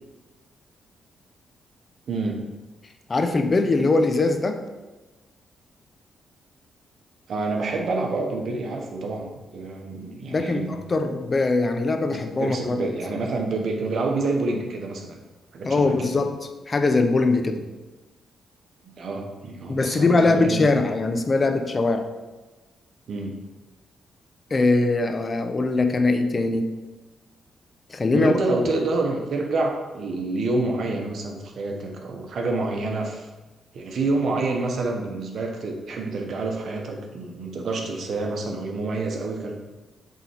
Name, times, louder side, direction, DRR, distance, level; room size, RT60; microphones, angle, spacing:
voice 1, 2.1-2.5 7.3-10.8 12.1-15.2 15.5-16.2 18.8-20.7 23.1-23.4 28.1-33.3 33.7-39.6, right 3 dB, 65° right, 2 dB, 1.3 m, -28 dB
voice 2, 3.1-4.6 10.3-12.9 15.6-16.4 16.7-17.6 19.7-22.1 24.5-26.7 27.9-28.3, left 3 dB, 35° left, 6 dB, 0.9 m, -21 dB
7.9 x 3.8 x 4.6 m, 1.2 s
supercardioid pair, 65°, 0 cm